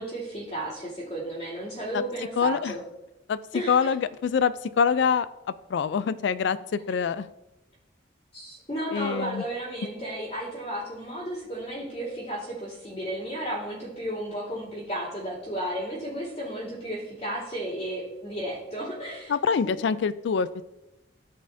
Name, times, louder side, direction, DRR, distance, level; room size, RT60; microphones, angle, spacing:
voice 1, 0.0-2.8 3.5-3.7 8.3-19.3 19.6-19.7, right 1 dB, 35° left, -11 dB, 2.9 m, -33 dB
voice 2, 2.4-2.7 3.3-3.4 3.7-5.3 5.7-7.3 8.9-9.4 19.3-20.6, left 6 dB, 70° left, 15 dB, 0.3 m, -25 dB
14.0 x 5.4 x 2.7 m, 0.95 s
head